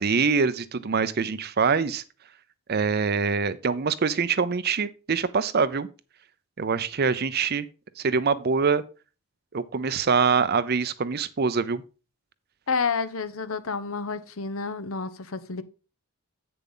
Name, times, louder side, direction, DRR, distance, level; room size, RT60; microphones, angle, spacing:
voice 1, 0.0-2.0 2.7-5.9 6.6-7.7 8.0-8.8 9.5-11.8, right 5 dB, 45° right, 0.6 m, -24 dB
voice 2, 12.7-15.6, left 5 dB, 70° left, 0.8 m, -29 dB
8.7 x 6.9 x 3.9 m
head